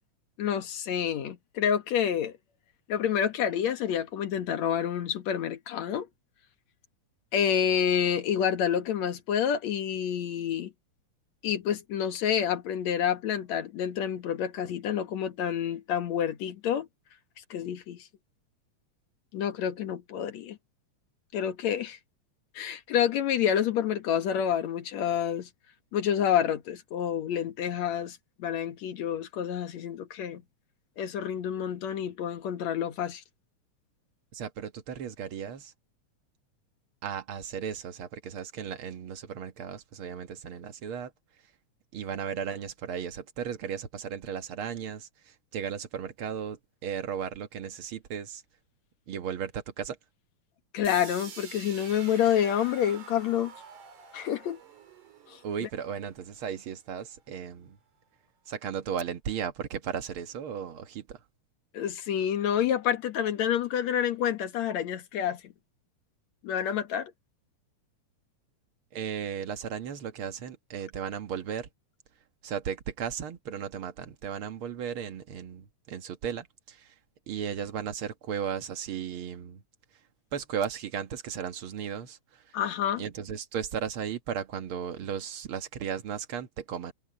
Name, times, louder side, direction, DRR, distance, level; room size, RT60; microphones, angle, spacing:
voice 1, 0.4-2.3 2.9-6.1 7.3-10.7 11.4-16.9 17.5-18.1 19.3-20.6 21.3-22.0 22.6-25.5 25.9-30.4 31.0-33.2 50.7-53.5 54.1-54.6 55.3-55.4 61.7-65.4 66.4-67.1 82.5-83.0, left 9 dB, 65° left, 2.7 m, -28 dB
voice 2, 34.3-35.7 37.0-41.1 41.9-48.4 49.1-50.0 55.4-57.8 58.5-61.2 68.9-71.7 72.4-77.0 77.3-79.6 80.3-82.6 83.0-86.9, right 7 dB, 55° right, 1.8 m, -35 dB
sound 1, 50.8-56.8, right 6 dB, 85° right, 4.5 m, -48 dB
omnidirectional pair, 3.5 m